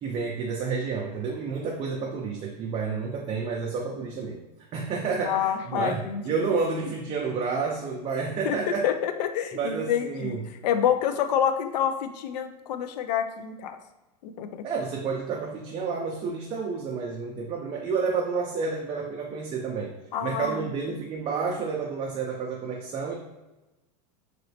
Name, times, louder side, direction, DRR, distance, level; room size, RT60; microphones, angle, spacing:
voice 1, 0.0-4.4 4.7-8.9 9.5-10.5 14.6-19.9 20.2-23.1, right 5 dB, 30° right, -1 dB, 0.4 m, -30 dB
voice 2, 5.2-6.4 8.4-8.6 8.8-10.4 10.6-13.8 14.2-14.7 20.1-20.6, left 9 dB, 75° left, 8 dB, 0.4 m, -27 dB
3.0 x 2.9 x 2.8 m, 1.1 s
hypercardioid pair, 105°, 21 cm